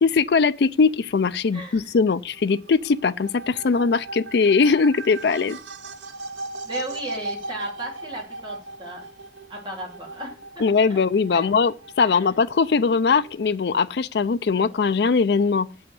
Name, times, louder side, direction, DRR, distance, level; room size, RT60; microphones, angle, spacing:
voice 1, 0.0-5.6 10.6-15.7, left 5 dB, 65° left, 0.4 m, -20 dB
voice 2, 1.5-1.9 6.6-9.1 9.5-10.4 10.9-11.0 11.3-11.5 12.0-12.3, right 1 dB, 25° right, 3.4 m, -35 dB
sound 1, 2.3-13.6, right 2 dB, 90° right, 0.7 m, -38 dB
7.7 x 5.6 x 7.6 m
head